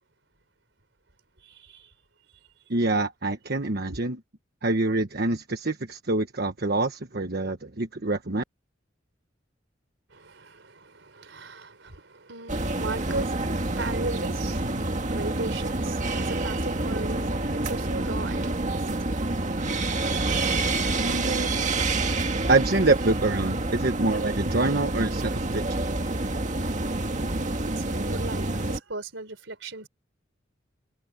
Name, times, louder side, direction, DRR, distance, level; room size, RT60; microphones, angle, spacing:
voice 1, 1.5-1.9 3.9-4.0 10.1-20.2 27.2-29.9, right 3 dB, 75° right, 4.1 m, -38 dB
voice 2, 2.7-4.2 4.6-8.4 20.9-21.7 22.5-25.8, right 2 dB, 55° right, 1.3 m, -26 dB
sound 1, 12.5-28.8, right 2 dB, 40° right, 1.8 m, -28 dB
head